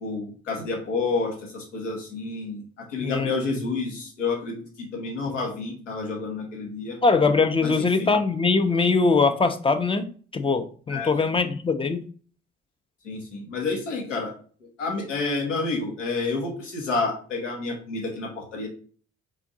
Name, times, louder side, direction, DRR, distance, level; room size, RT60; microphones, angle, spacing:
voice 1, 0.0-2.6 2.9-7.0 7.6-8.1 10.9-11.4 13.0-14.3 14.8-18.7, left 3 dB, 90° left, 0 dB, 0.9 m, -29 dB
voice 2, 3.0-3.3 7.0-12.0, left 4 dB, 15° left, 9 dB, 0.4 m, -22 dB
3.7 x 2.6 x 3.7 m, 0.42 s
hypercardioid pair, 50°, 36 cm